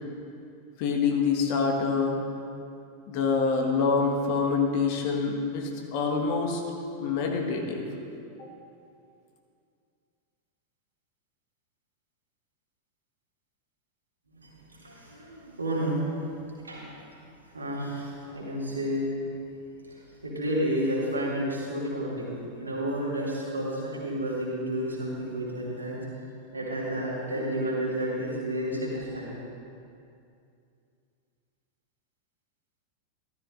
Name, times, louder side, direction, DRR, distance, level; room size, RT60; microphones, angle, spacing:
voice 1, 0.8-2.2 3.1-6.6 7.0-7.8, left 5 dB, 45° left, 1 dB, 1.5 m, -26 dB
voice 2, 14.8-16.9 17.4-19.1 19.9-26.0 26.5-29.3, right 1 dB, 80° right, -6 dB, 2.6 m, -31 dB
14.0 x 13.0 x 2.6 m, 2.5 s
figure-of-eight pair, 90°, 0 cm